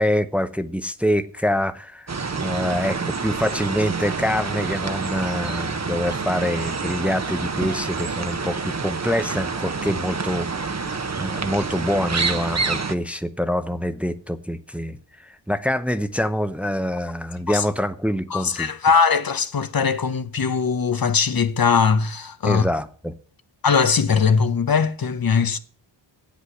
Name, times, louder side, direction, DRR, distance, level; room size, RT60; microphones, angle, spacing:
voice 1, 0.0-18.7 22.4-23.1, equal, 5° right, 0.8 m, -25 dB
sound 1, 2.1-13.0, right 4 dB, 35° right, 1.0 m, -27 dB
voice 2, 18.3-22.7 23.6-25.6, left 5 dB, 50° left, 0.8 m, -20 dB
8.4 x 8.1 x 7.8 m
cardioid pair, 60°, 46 cm